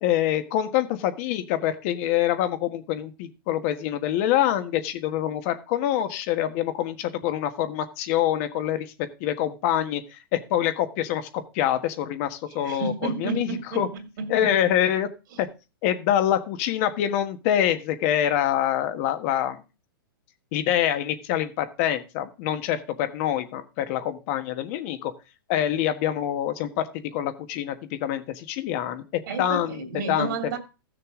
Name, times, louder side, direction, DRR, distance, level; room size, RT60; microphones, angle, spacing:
voice 1, 0.0-8.9 9.2-13.9 14.3-15.1 15.4-15.5 15.8-19.6 20.5-25.1 25.5-29.0 29.4-29.8 30.1-30.3, left 11 dB, 40° left, 1.4 m, -25 dB
voice 2, 12.5-14.5 29.3-30.6, right 4 dB, 60° right, 2.7 m, -31 dB
15.0 x 6.7 x 3.7 m
hypercardioid pair, 150°, 12 cm